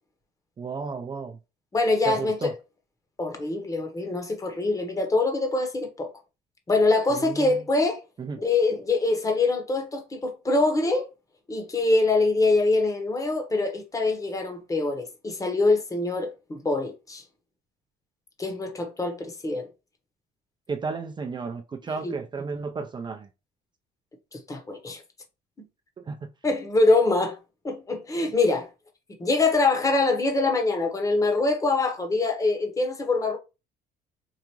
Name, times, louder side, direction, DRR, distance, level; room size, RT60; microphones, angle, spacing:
voice 1, 0.6-1.4 2.0-2.5 7.1-7.6 8.2-8.4 20.7-23.3 26.0-26.3, right 4 dB, 25° right, 0.5 m, -33 dB
voice 2, 1.7-2.5 3.2-6.1 6.7-8.0 8.4-11.1 11.5-17.2 18.4-19.7 22.0-22.1 24.3-25.0 26.4-27.4 27.6-28.7 29.2-33.4, left 3 dB, 20° left, 1.0 m, -24 dB
4.8 x 2.5 x 2.9 m
cardioid pair, 110°, 17 cm